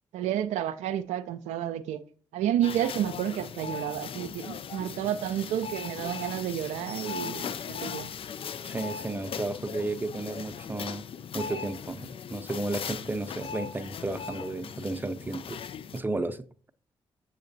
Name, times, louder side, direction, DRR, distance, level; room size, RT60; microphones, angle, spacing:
voice 1, 0.1-2.0 2.3-8.1, right 11 dB, 75° right, 0.4 m, -30 dB
sound 1, 2.6-16.0, left 7 dB, 50° left, 0.4 m, -39 dB
voice 2, 8.6-11.0 11.3-15.6 15.9-16.4, right 2 dB, 15° right, 0.6 m, -33 dB
7.8 x 6.4 x 2.6 m
hypercardioid pair, 40°, 12 cm